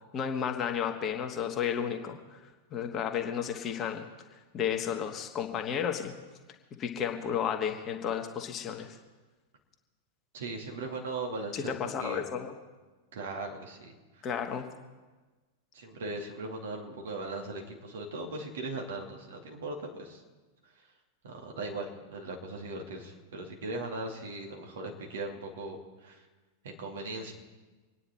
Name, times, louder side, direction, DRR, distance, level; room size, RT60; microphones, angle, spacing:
voice 1, 0.1-4.1 4.5-6.1 6.8-9.0 11.5-12.5 14.2-14.7, left 8 dB, 30° left, 4 dB, 1.7 m, -32 dB
voice 2, 10.3-12.3 13.1-14.2 15.7-20.2 21.2-26.2 26.6-27.3, right 2 dB, 60° right, 1 dB, 2.5 m, -39 dB
26.0 x 9.8 x 4.4 m, 1.3 s
figure-of-eight pair, 90°, 0 cm